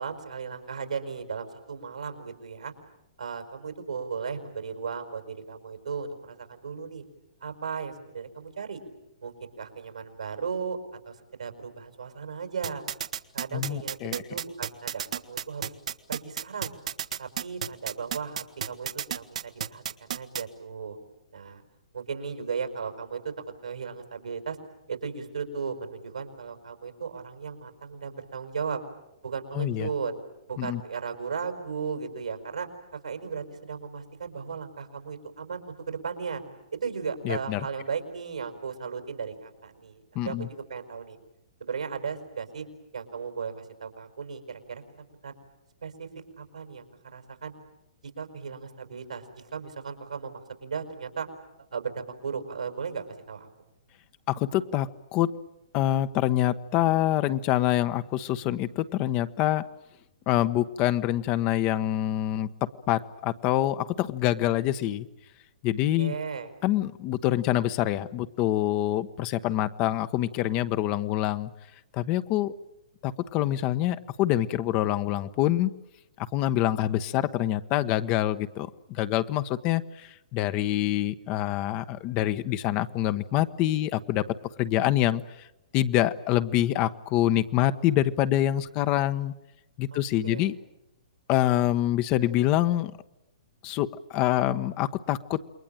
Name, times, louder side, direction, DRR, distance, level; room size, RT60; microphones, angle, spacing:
voice 1, 0.0-2.7 3.2-7.0 7.4-8.8 9.2-10.8 11.0-12.8 13.3-15.7 16.1-16.8 17.2-21.0 21.3-21.6 21.9-23.3 23.6-24.6 24.9-28.8 29.2-30.1 30.5-32.7 33.0-36.4 36.7-41.2 41.6-42.7 42.9-44.8 45.2-45.4 45.8-46.1 46.4-46.8 47.1-47.5 48.2-51.3 51.7-53.5 66.0-66.5 89.9-90.5, right 6 dB, 90° right, 6 dB, 5.2 m, -36 dB
sound 1, 12.6-20.4, right 9 dB, 70° right, 1.5 m, -31 dB
voice 2, 13.5-14.1 29.5-29.9 30.6-30.8 37.2-37.6 40.1-40.5 54.3-55.4 55.7-59.6 60.3-62.5 62.9-65.1 65.6-66.1 66.6-71.5 71.9-72.5 73.0-75.7 76.2-84.3 84.6-85.5 85.7-89.3 89.8-90.5 91.3-92.9 93.6-95.4, left 13 dB, 35° left, 12 dB, 1.1 m, -26 dB
28.5 x 22.0 x 9.0 m, 0.87 s
hypercardioid pair, 135°, 4 cm